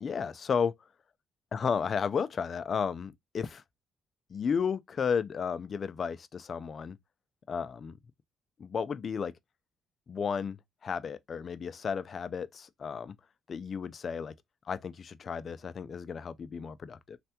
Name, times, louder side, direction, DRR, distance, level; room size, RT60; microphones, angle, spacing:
voice 1, 0.0-0.7 1.5-3.6 4.3-7.0 7.5-8.0 8.6-9.3 10.1-13.1 13.5-14.3 14.7-17.2, left 6 dB, 50° left, 0.3 m, -33 dB
3.2 x 2.2 x 2.8 m
cardioid pair, 90°, 0 cm